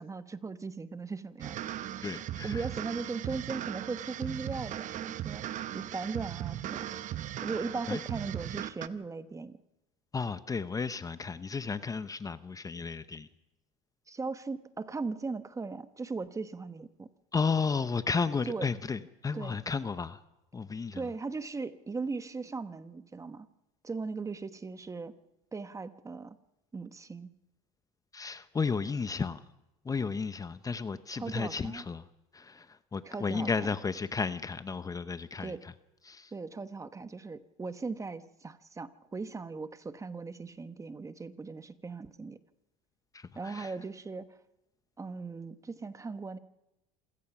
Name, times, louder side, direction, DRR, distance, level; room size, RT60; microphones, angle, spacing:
voice 1, 0.0-1.7 2.4-6.9 7.4-9.5 14.1-17.1 18.4-18.7 19.3-19.6 20.9-23.5 23.8-25.1 25.5-26.4 26.7-27.3 31.1-31.9 33.0-33.7 35.4-35.6 36.3-42.4 43.3-44.3 45.0-46.4, right 4 dB, 20° right, 12 dB, 1.0 m, -38 dB
sound 1, 1.4-8.9, right 12 dB, 45° right, 0.9 m, -38 dB
voice 2, 2.0-2.6 7.9-8.0 10.1-13.3 17.3-20.2 20.5-21.1 28.1-29.4 29.8-32.0 32.3-35.7 36.0-36.3 43.1-43.7, left 5 dB, 20° left, 13 dB, 0.8 m, -33 dB
26.5 x 16.5 x 6.0 m, 0.93 s
supercardioid pair, 95°, 17 cm